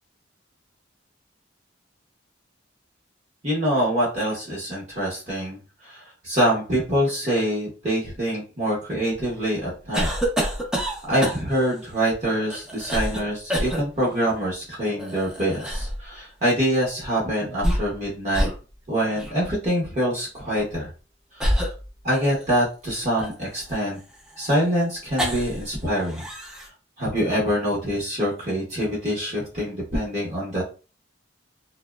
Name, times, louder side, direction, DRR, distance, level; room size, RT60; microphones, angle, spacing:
voice 1, 3.4-10.1 11.1-18.5 18.9-20.9 21.3-21.7 22.0-24.0 24.4-26.2 27.0-30.6, equal, 35° right, -5 dB, 0.8 m, -25 dB
sound 1, 9.9-11.7 12.5-13.2 13.5-13.8 15.0-16.0 17.4-18.0 18.3-18.6 19.2-19.3 20.4-20.6 21.4-22.6 23.2-25.7 26.0-26.7, equal, 5° right, 0.5 m, -27 dB
2.7 x 2.0 x 2.2 m, 0.34 s
head